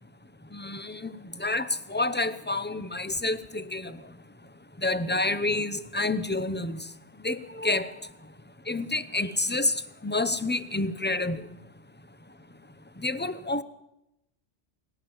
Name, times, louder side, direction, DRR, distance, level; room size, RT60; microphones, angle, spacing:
voice 1, 0.5-4.0 4.8-6.8 7.2-7.9 8.7-9.7 10.0-11.4 13.0-13.6, left 2 dB, 10° left, 14 dB, 0.7 m, -28 dB
20.5 x 17.5 x 7.2 m, 0.89 s
omnidirectional pair, 1.2 m